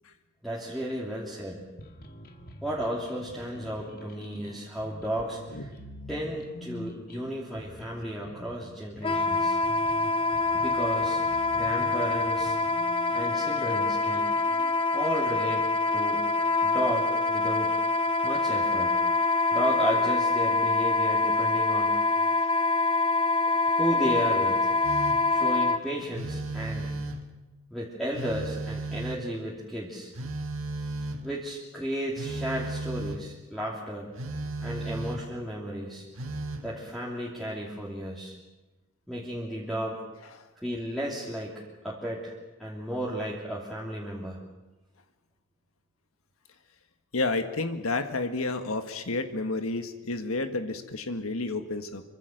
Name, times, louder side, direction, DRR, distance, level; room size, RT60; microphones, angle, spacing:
voice 1, 0.4-1.6 2.6-5.7 6.1-9.6 10.5-11.2 11.5-12.6 13.1-14.3 14.9-15.7 15.9-16.3 16.6-17.8 18.2-19.0 19.5-22.0 23.6-24.7 25.3-26.9 27.7-30.1 31.2-34.1 34.6-36.1 36.6-38.3 39.1-40.0 40.6-42.3 42.6-44.4, equal, ahead, -5 dB, 2.9 m, -33 dB
sound 1, 1.8-14.7, equal, 45° left, 2.3 m, -46 dB
Wind instrument woodwind instrument, 9.0-25.8, left 3 dB, 25° left, 1.0 m, -25 dB
Telephone, 24.8-25.4 26.1-27.4 28.1-29.4 30.1-31.4 32.1-33.3 34.2-35.4 36.2-36.7, right 2 dB, 65° right, 1.8 m, -35 dB
voice 2, 47.1-52.0, left 3 dB, 75° left, 7 dB, 1.7 m, -31 dB
26.0 x 24.5 x 6.6 m, 1.1 s
head